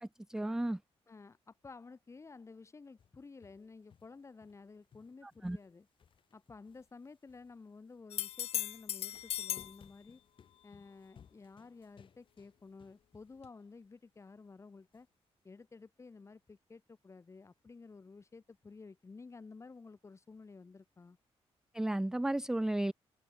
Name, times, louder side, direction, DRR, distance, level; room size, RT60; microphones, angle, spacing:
voice 1, 0.0-0.8 5.2-5.6 21.7-22.9, right 1 dB, 5° right, 0.4 m, -34 dB
voice 2, 1.1-5.9 6.3-10.2 10.6-15.1 15.4-21.2, left 4 dB, 25° left, 4.6 m, -53 dB
sound 1, 3.0-4.6 4.9-8.0 8.7-13.4 13.8-13.9 14.9-15.0, left 7 dB, 50° left, 3.3 m, -64 dB
sound 2, 8.1-9.8 13.4-13.5, left 11 dB, 75° left, 0.5 m, -37 dB
open air
wide cardioid pair, 155°, 11 cm